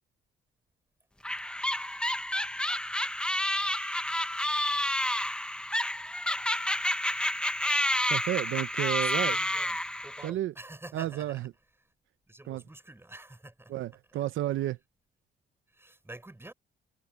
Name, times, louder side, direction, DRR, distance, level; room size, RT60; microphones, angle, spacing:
sound 1, 1.2-10.3, left 1 dB, 5° left, 0.9 m, -30 dB
voice 1, 8.1-9.4 10.2-10.5 10.9-11.5 12.5-12.6 13.7-14.8, right 14 dB, 80° right, 0.8 m, -31 dB
voice 2, 9.0-11.5 11.8-11.9 12.3-14.2 14.6-14.7 15.7-16.5, right 2 dB, 10° right, 6.3 m, -48 dB
cardioid pair, 90°, 20 cm